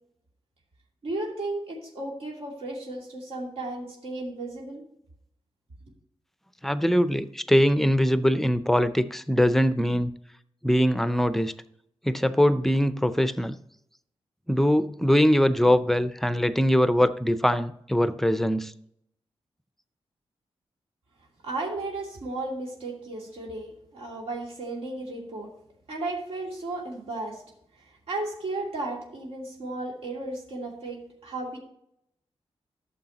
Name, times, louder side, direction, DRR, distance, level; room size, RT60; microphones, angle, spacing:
voice 1, 1.0-4.8 21.4-25.5 25.9-27.4 27.8-31.6, right 2 dB, 80° right, -2 dB, 2.7 m, -34 dB
voice 2, 6.6-10.1 10.6-11.5 12.0-13.6 14.5-18.7, equal, 5° left, 13 dB, 0.5 m, -22 dB
13.0 x 7.0 x 2.9 m, 0.73 s
wide cardioid pair, 125°, 10 cm